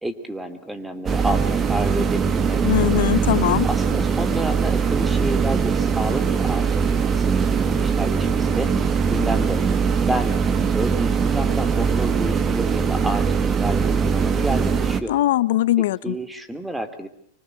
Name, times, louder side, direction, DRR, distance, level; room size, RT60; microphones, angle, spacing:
voice 1, 0.0-2.7 3.6-9.6 10.1-10.4 10.7-15.1 16.0-17.1, right 1 dB, 5° right, 11 dB, 2.9 m, -30 dB
sound 1, 1.1-15.0, right 6 dB, 25° right, 2.1 m, -21 dB
voice 2, 2.6-3.7 15.1-16.1, left 15 dB, 75° left, 17 dB, 1.0 m, -20 dB
25.0 x 24.5 x 8.0 m, 0.64 s
supercardioid pair, 135°, 0 cm